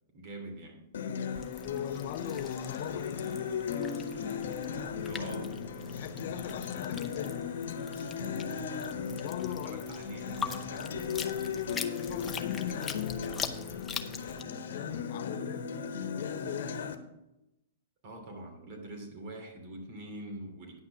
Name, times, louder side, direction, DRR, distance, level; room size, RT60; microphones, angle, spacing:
voice 1, 0.1-0.9 5.1-5.6 6.1-6.3 8.2-8.5 9.4-11.1 18.0-20.8, right 1 dB, 45° right, 2.7 m, -44 dB
Acoustic guitar, 0.9-17.0, left 6 dB, 75° left, 1.1 m, -37 dB
sound 1, 1.3-14.4, left 6 dB, 15° left, 0.6 m, -43 dB
voice 2, 1.6-3.3 5.9-7.5 9.2-9.9 12.0-14.0 14.7-15.7 16.1-17.0, left 10 dB, 55° left, 0.7 m, -39 dB
9.7 x 6.0 x 6.0 m
hypercardioid pair, 145°, 0 cm